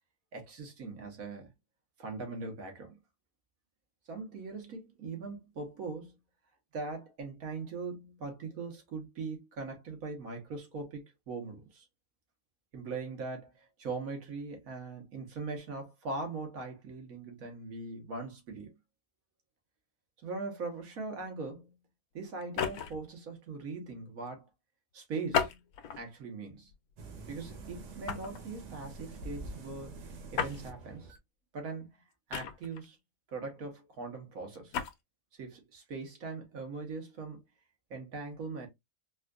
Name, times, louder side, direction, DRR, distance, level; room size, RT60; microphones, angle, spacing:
voice 1, 0.3-1.5 2.0-3.0 4.1-6.2 6.7-11.9 12.7-18.7 20.2-21.7 22.1-24.5 24.9-25.6 25.9-26.7 27.3-31.1 31.5-31.9 32.3-33.0 33.3-34.8 35.4-37.4 37.9-38.7, right 3 dB, 60° right, 1.6 m, -41 dB
sound 1, 22.4-23.1 25.3-26.1 26.7-26.9 28.1-28.4 30.3-30.6 32.3-32.9 34.5-34.9, left 7 dB, 70° left, 1.0 m, -33 dB
sound 2, 27.0-31.2, right 3 dB, 85° right, 1.6 m, -46 dB
4.1 x 2.5 x 2.3 m
omnidirectional pair, 1.7 m